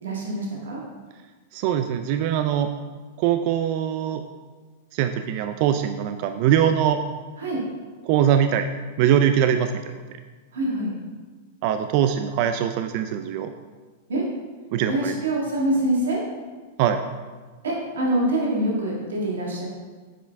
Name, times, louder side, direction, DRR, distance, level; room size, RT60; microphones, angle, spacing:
voice 1, 0.0-0.8 7.4-7.6 10.5-10.9 14.1-14.2 14.9-16.2 17.6-19.6, right 1 dB, 90° right, -3 dB, 1.7 m, -25 dB
voice 2, 1.5-2.7 3.2-4.2 4.9-7.0 8.0-8.7 9.0-9.7 11.6-13.5 14.7-15.1 16.8-17.0, right 9 dB, 50° right, 8 dB, 0.3 m, -22 dB
7.2 x 4.6 x 3.4 m, 1.4 s
hypercardioid pair, 125°, 0 cm